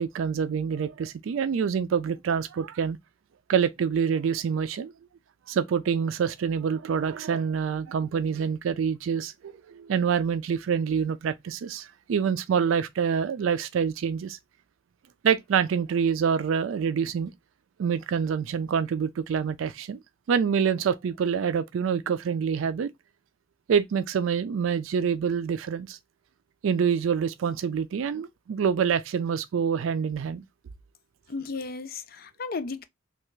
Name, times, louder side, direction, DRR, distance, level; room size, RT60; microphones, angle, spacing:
voice 1, 0.0-3.0 3.5-4.9 5.5-14.4 15.2-17.3 17.8-20.0 20.3-22.9 23.7-26.0 26.6-30.4, right 7 dB, 85° right, 0.4 m, -26 dB
voice 2, 31.3-32.8, left 4 dB, 50° left, 0.4 m, -34 dB
3.3 x 2.4 x 3.0 m
head